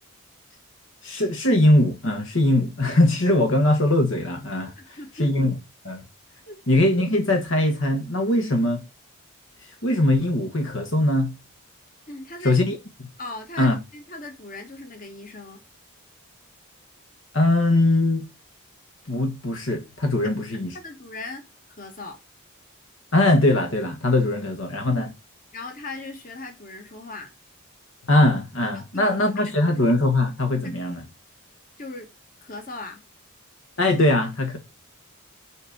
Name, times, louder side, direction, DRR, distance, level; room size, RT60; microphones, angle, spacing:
voice 1, 1.0-5.5 5.8-6.0 6.7-8.8 9.8-11.3 12.4-12.8 13.6-13.8 17.3-18.2 19.1-20.7 23.1-25.1 28.1-31.0 33.8-34.6, left 1 dB, 60° left, 1.5 m, -21 dB
voice 2, 4.7-5.5 6.5-6.6 12.1-12.6 13.2-15.6 20.5-22.2 25.5-27.3 28.9-29.0 29.4-29.5 31.8-32.1 32.4-33.0, left 2 dB, 40° left, 1.8 m, -38 dB
6.4 x 4.8 x 6.4 m
head